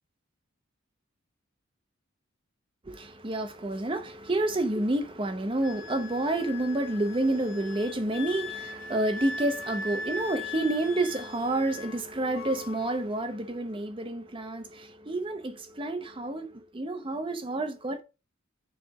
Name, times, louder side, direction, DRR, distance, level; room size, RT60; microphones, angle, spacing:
voice 1, 2.9-18.0, right 1 dB, 25° right, 0.7 m, -29 dB
Wind instrument woodwind instrument, 5.6-12.0 12.3-13.0, left 3 dB, 90° left, 1.5 m, -40 dB
6.4 x 3.3 x 4.8 m
head